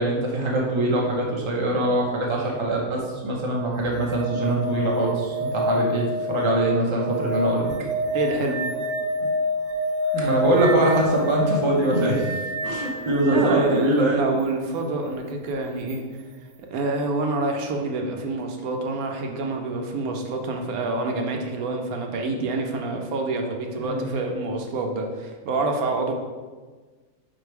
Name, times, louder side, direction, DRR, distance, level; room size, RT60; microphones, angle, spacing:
voice 1, 0.0-7.7 10.1-14.2 23.8-24.2, right 1 dB, 25° right, -2 dB, 0.8 m, -23 dB
sound 1, 3.7-13.6 15.9-16.0, left 1 dB, 60° right, 1.0 m, -28 dB
voice 2, 8.1-8.6 9.2-9.3 12.8-16.0 16.7-26.1, right 3 dB, 80° right, 2 dB, 1.2 m, -27 dB
4.9 x 4.1 x 4.7 m, 1.4 s
omnidirectional pair, 1.5 m